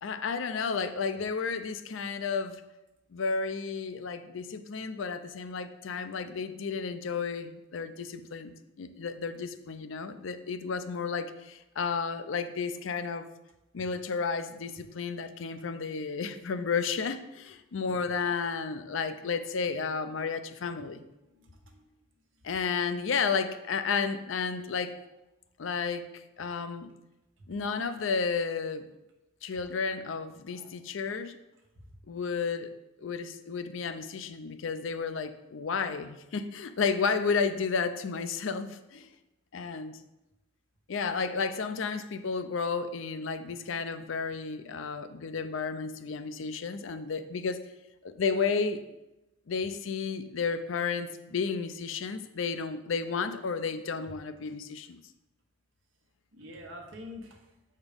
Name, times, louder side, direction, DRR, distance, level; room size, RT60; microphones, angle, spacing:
voice 1, 0.0-2.6 3.1-13.3 13.7-21.1 22.4-25.0 25.6-27.0 27.5-28.9 29.4-31.4 32.1-32.7 33.0-39.1 39.5-40.0 40.9-47.6 48.0-48.8 49.5-55.0, left 5 dB, 75° left, 10 dB, 0.5 m, -32 dB
voice 2, 21.3-21.8 30.5-30.7 56.3-57.4, left 1 dB, 70° right, 2 dB, 1.2 m, -46 dB
7.0 x 4.4 x 5.1 m, 0.97 s
head